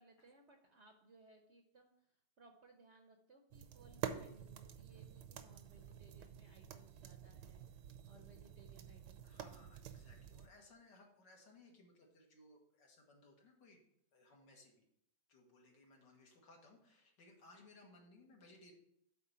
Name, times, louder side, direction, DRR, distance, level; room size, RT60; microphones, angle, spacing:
voice 1, 0.0-9.9, right 2 dB, 55° right, 4 dB, 0.8 m, -65 dB
sound 1, 3.5-10.5, right 9 dB, 75° right, 1.2 m, -49 dB
voice 2, 9.2-13.8 14.1-14.8 15.3-18.7, left 2 dB, 75° left, 0 dB, 2.2 m, -63 dB
8.7 x 4.0 x 5.6 m, 0.73 s
omnidirectional pair, 1.9 m